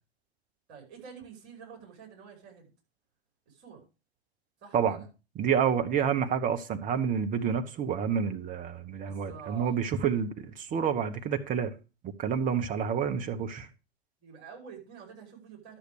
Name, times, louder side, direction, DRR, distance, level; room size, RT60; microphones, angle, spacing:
voice 1, 0.7-2.7 3.5-3.9 4.6-5.1 9.0-9.8 14.2-15.8, right 7 dB, 45° right, 5.4 m, -48 dB
voice 2, 5.4-11.7 12.0-13.7, right 7 dB, 25° right, 1.2 m, -29 dB
12.0 x 6.7 x 4.9 m
figure-of-eight pair, 100°, 33 cm